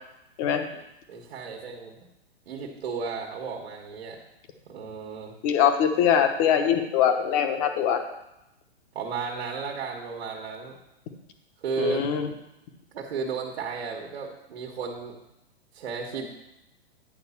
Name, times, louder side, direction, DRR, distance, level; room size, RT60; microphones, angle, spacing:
voice 1, 1.1-2.1 2.5-4.2 4.6-5.3 8.9-10.8 11.6-12.0 12.9-15.1 15.7-16.3, right 5 dB, 70° right, 1 dB, 1.6 m, -33 dB
voice 2, 5.4-8.0 11.8-12.3, left 8 dB, 35° left, 7 dB, 1.0 m, -22 dB
9.6 x 4.0 x 7.2 m, 0.89 s
hypercardioid pair, 140°, 31 cm